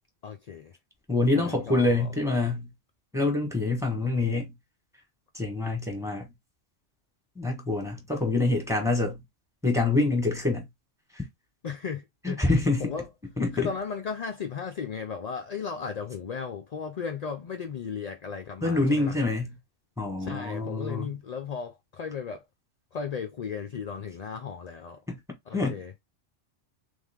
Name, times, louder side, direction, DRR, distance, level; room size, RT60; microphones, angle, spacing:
voice 1, 0.2-0.7 1.3-2.1 11.6-12.5 12.8-13.1 13.5-19.2 20.2-22.4 22.9-25.0 25.5-25.9, left 6 dB, 50° left, 0.5 m, -35 dB
voice 2, 1.1-2.7 3.1-4.5 5.3-6.3 7.3-9.2 9.6-10.7 11.1-11.2 12.2-12.9 13.4-13.7 18.6-19.5 20.0-21.1 25.1-25.2 25.5-25.8, left 2 dB, 5° right, 1.4 m, -26 dB
3.7 x 3.4 x 3.5 m
omnidirectional pair, 1.3 m